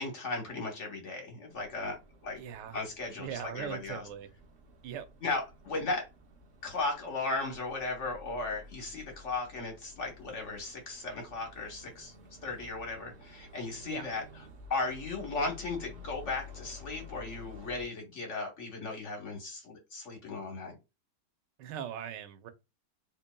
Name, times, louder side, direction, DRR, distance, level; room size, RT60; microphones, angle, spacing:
voice 1, 0.0-2.4 2.7-4.0 5.2-6.1 6.6-12.1 12.4-14.2 14.7-20.8, left 3 dB, 50° left, 1.2 m, -36 dB
sound 1, 1.5-17.8, left 3 dB, 50° right, 1.0 m, -52 dB
voice 2, 2.4-2.8 3.2-4.3 4.8-5.1 13.8-14.1 21.6-22.5, right 9 dB, 90° right, 1.3 m, -40 dB
4.3 x 3.0 x 2.2 m
omnidirectional pair, 1.8 m